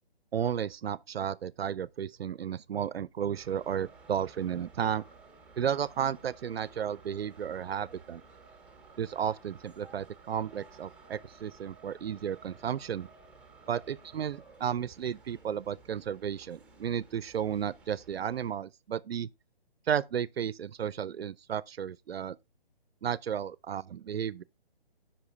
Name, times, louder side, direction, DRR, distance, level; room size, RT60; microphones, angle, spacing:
voice 1, 0.3-5.0 5.6-8.2 9.0-13.1 13.7-19.3 19.9-22.4 23.0-24.4, right 8 dB, 80° right, 0.5 m, -33 dB
sound 1, 3.3-18.5, right 4 dB, 5° right, 1.0 m, -55 dB
8.2 x 5.9 x 2.7 m
figure-of-eight pair, 145°, 30 cm